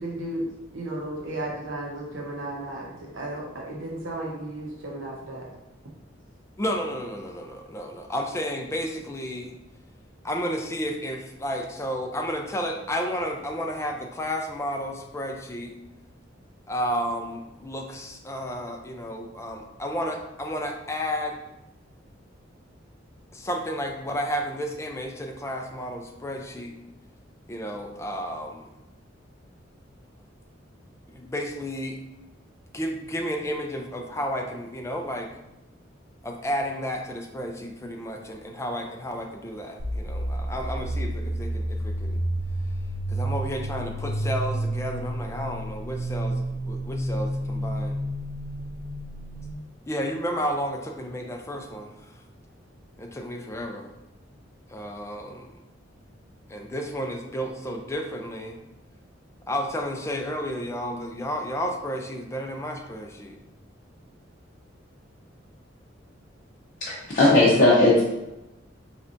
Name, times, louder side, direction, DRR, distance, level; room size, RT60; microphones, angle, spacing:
voice 1, 0.0-5.5, right 1 dB, 80° right, -2 dB, 0.8 m, -34 dB
voice 2, 6.6-9.5 10.2-15.8 16.7-21.4 23.3-26.8 27.5-28.7 31.1-32.0 32.7-35.3 36.2-42.2 43.1-48.0 49.9-52.1 53.0-53.9 54.7-55.5 56.5-58.6 59.5-63.4, equal, 15° left, 2 dB, 0.4 m, -32 dB
sound 1, 39.8-49.5, right 1 dB, 50° right, 0.6 m, -30 dB
voice 3, 66.9-68.1, left 2 dB, 45° left, -8 dB, 0.8 m, -18 dB
4.1 x 3.3 x 2.5 m, 0.95 s
head